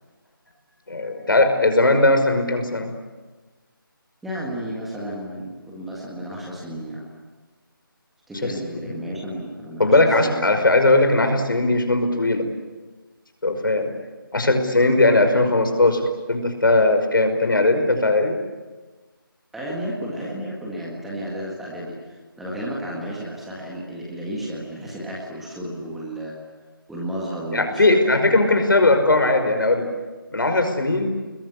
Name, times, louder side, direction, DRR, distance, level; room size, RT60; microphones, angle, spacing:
voice 1, 0.9-2.9 9.8-12.5 13.4-13.9 14.3-16.0 16.3-18.4 27.5-29.9 30.3-31.1, left 2 dB, 65° left, 7 dB, 5.5 m, -18 dB
voice 2, 4.2-7.1 8.3-10.5 19.5-26.4 26.9-28.6, equal, ahead, -4 dB, 1.8 m, -32 dB
29.0 x 21.5 x 8.5 m, 1.3 s
figure-of-eight pair, 175°, 12 cm